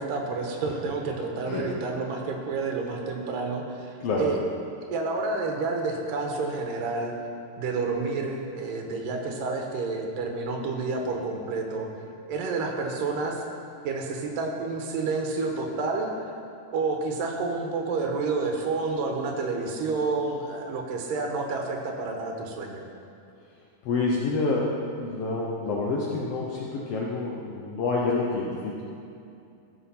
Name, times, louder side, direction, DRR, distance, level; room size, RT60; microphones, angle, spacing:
voice 1, 0.0-4.4 4.8-7.1 7.6-11.9 12.3-13.4 13.8-16.1 16.7-22.8, right 3 dB, 85° right, 2 dB, 2.8 m, -29 dB
voice 2, 23.8-24.7 25.0-28.8, left 3 dB, 75° left, -3 dB, 1.4 m, -28 dB
14.0 x 5.3 x 5.7 m, 2.5 s
omnidirectional pair, 3.8 m